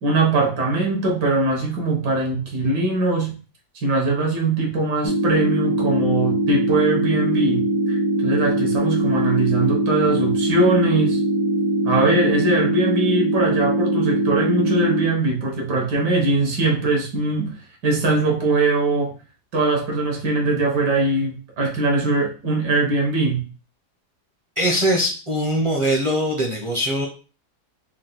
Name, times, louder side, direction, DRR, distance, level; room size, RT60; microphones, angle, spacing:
voice 1, 0.0-3.4 3.8-11.2 11.9-17.6 17.8-19.1 19.5-23.4, right 2 dB, 75° right, 0 dB, 1.8 m, -21 dB
sound 1, 5.0-15.0, right 1 dB, 35° left, 0.5 m, -21 dB
voice 2, 24.6-27.1, equal, 30° right, -1 dB, 0.5 m, -21 dB
4.5 x 2.2 x 3.9 m, 0.35 s
omnidirectional pair, 1.8 m